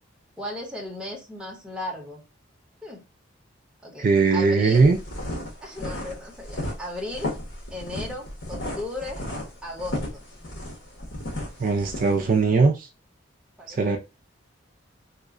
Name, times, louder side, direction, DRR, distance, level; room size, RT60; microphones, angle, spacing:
voice 1, 0.4-2.2 2.8-3.0 3.8-4.9 5.6-7.4 7.7-9.2 9.6-10.2 13.6-14.0, left 1 dB, 5° right, 0.9 m, -35 dB
voice 2, 4.0-5.0 11.6-12.9 13.7-14.0, right 4 dB, 45° right, 0.4 m, -20 dB
sound 1, 4.7-12.3, left 1 dB, 75° left, 1.2 m, -34 dB
3.1 x 2.2 x 3.6 m
head